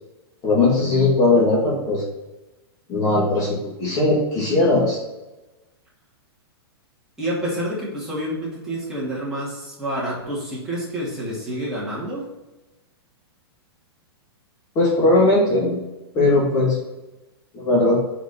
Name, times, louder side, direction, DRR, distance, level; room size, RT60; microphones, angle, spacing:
voice 1, 0.4-2.0 2.9-5.0 14.8-15.8 16.1-16.8 17.5-18.0, left 2 dB, 25° left, -5 dB, 2.0 m, -18 dB
voice 2, 7.2-12.3, equal, 5° right, -9 dB, 2.4 m, -28 dB
6.0 x 5.0 x 4.3 m, 1.0 s
hypercardioid pair, 155°, 14 cm